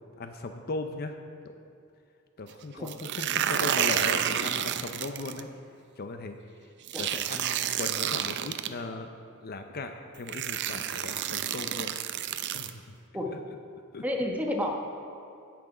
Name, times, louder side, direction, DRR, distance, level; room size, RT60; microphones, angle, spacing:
voice 1, 0.2-1.2 1.4-1.6 2.4-5.5 6.0-9.1 9.4-11.9 12.5-12.9 13.3-13.5 13.9-14.0, left 3 dB, 45° left, 6 dB, 0.6 m, -38 dB
sound 1, 2.9-5.4 6.9-8.7 9.7-9.8 10.3-12.7, right 10 dB, 55° right, 0.5 m, -30 dB
voice 2, 14.0-14.7, left 1 dB, 5° right, 0 dB, 1.1 m, -30 dB
16.5 x 6.0 x 5.0 m, 2.5 s
head